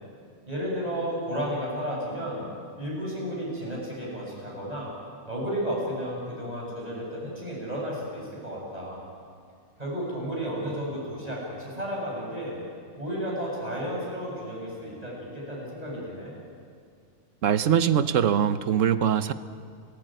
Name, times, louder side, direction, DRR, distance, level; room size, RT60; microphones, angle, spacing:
voice 1, 0.5-2.4 2.8-4.9 5.3-9.0 9.8-12.6 13.0-16.3, equal, 30° right, -4 dB, 8.0 m, -32 dB
voice 2, 17.4-19.3, right 8 dB, 80° right, 12 dB, 1.2 m, -22 dB
29.5 x 15.5 x 9.2 m, 2.2 s
omnidirectional pair, 1.3 m